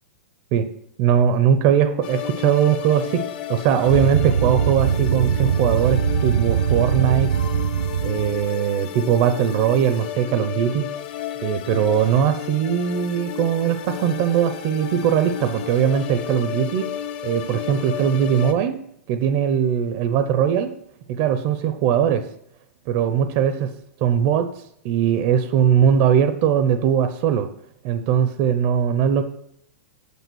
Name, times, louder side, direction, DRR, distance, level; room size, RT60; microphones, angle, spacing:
voice 1, 1.0-3.2 3.5-7.3 8.0-10.9 11.4-16.9 17.2-18.8 19.1-20.7 21.1-22.2 22.9-23.7 24.0-24.5 24.8-27.5 27.8-29.2, right 8 dB, 30° right, 10 dB, 0.5 m, -20 dB
sound 1, 2.0-18.5, left 10 dB, 40° left, 0.7 m, -33 dB
sound 2, 3.9-8.5, right 8 dB, 80° right, 0.6 m, -22 dB
8.1 x 4.7 x 6.1 m, 0.73 s
supercardioid pair, 170°, 8 cm